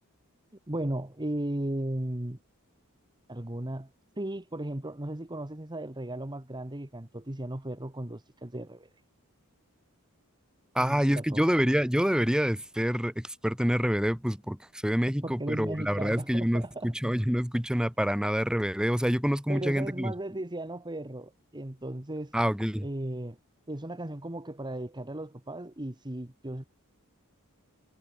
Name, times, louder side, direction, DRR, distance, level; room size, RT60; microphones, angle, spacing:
voice 1, 0.7-2.4 3.3-3.9 4.2-8.9 10.8-11.4 15.2-16.9 19.5-22.3 22.8-23.4 23.7-26.6, right 1 dB, 20° right, 1.5 m, -36 dB
voice 2, 10.7-20.1 22.3-22.9, equal, 5° right, 1.5 m, -27 dB
head